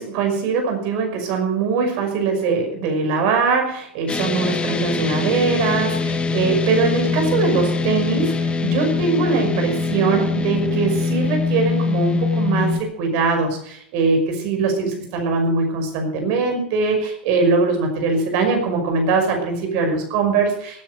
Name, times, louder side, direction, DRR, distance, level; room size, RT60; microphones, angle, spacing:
voice 1, 0.0-20.8, right 4 dB, 50° right, 4 dB, 5.7 m, -21 dB
sound 1, 4.1-12.8, left 4 dB, 20° left, 1.6 m, -23 dB
17.5 x 10.5 x 6.5 m, 0.70 s
hypercardioid pair, 105°, 6 cm